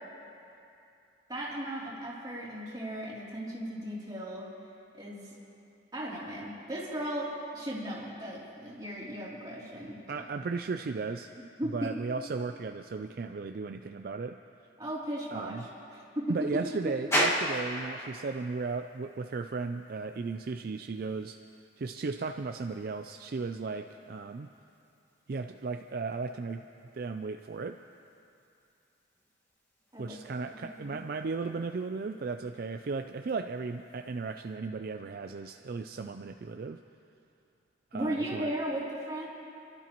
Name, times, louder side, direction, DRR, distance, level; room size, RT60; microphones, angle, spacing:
voice 1, 1.3-4.5 4.9-5.3 5.9-10.2 11.6-11.9 14.8-16.9 29.9-30.2 30.5-31.0 37.9-39.3, right 1 dB, 20° right, -7 dB, 3.0 m, -36 dB
voice 2, 10.1-11.3 11.7-14.4 15.3-15.6 16.3-21.4 21.8-24.5 25.3-26.6 26.9-27.8 30.0-36.8 37.9-38.5, right 4 dB, 55° right, 6 dB, 0.4 m, -35 dB
sound 1, 17.1-34.6, equal, 15° left, 1.7 m, -40 dB
29.5 x 12.0 x 3.0 m, 2.6 s
head